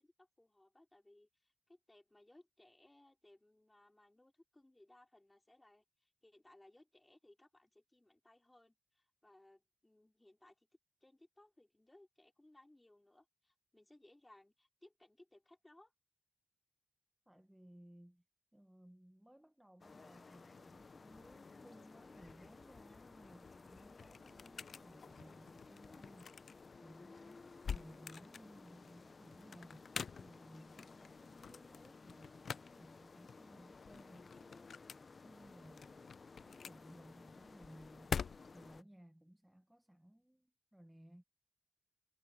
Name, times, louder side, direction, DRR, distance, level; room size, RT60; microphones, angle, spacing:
voice 1, 0.0-10.7 11.0-15.9, left 1 dB, 15° left, 5.1 m, -65 dB
voice 2, 17.3-18.2 18.5-34.8 35.2-36.1 36.4-38.2 38.5-41.2, right 1 dB, 5° right, 1.5 m, -60 dB
sound 1, 19.8-38.8, left 4 dB, 45° left, 0.9 m, -57 dB
sound 2, 23.3-38.8, left 6 dB, 70° left, 0.5 m, -48 dB
cardioid pair, 80°, 0 cm